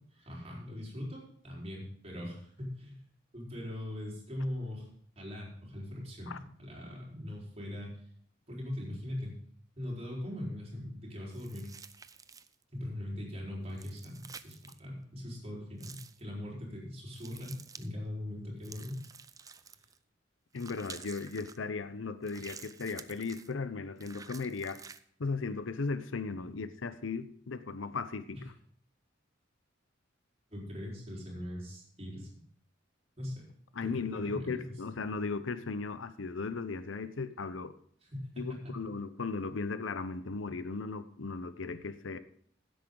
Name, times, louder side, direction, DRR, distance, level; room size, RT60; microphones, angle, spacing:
voice 1, 0.1-3.1 3.3-4.9 5.2-7.9 8.5-9.4 9.8-11.7 12.7-19.1 28.3-28.4 30.5-32.3 33.2-33.5 33.8-34.7 38.0-38.9, left 1 dB, 35° right, -3 dB, 4.4 m, -41 dB
sound 1, 11.3-12.6 13.7-14.8 15.8-16.2 17.1-17.9 18.6-20.0 20.5-21.6 22.2-23.5 24.0-25.0, right 6 dB, 20° right, 0.4 m, -50 dB
voice 2, 20.5-24.8 25.2-28.5 33.7-37.7 38.4-42.2, left 4 dB, 85° left, 13 dB, 0.7 m, -36 dB
16.0 x 8.3 x 3.9 m, 0.62 s
head